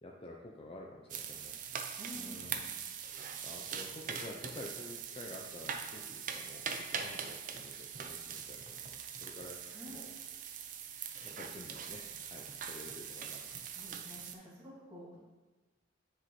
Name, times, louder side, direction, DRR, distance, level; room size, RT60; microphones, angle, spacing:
voice 1, 0.0-1.6 2.1-2.7 3.4-9.6 9.9-10.1 11.2-13.4, left 1 dB, 25° left, -1 dB, 0.5 m, -50 dB
sound 1, 1.1-14.3, right 7 dB, 40° right, 0.5 m, -42 dB
voice 2, 2.0-2.5 9.7-10.0 12.5-12.7 13.7-15.2, equal, 20° right, -8 dB, 2.2 m, -50 dB
9.6 x 4.9 x 3.1 m, 1.2 s
head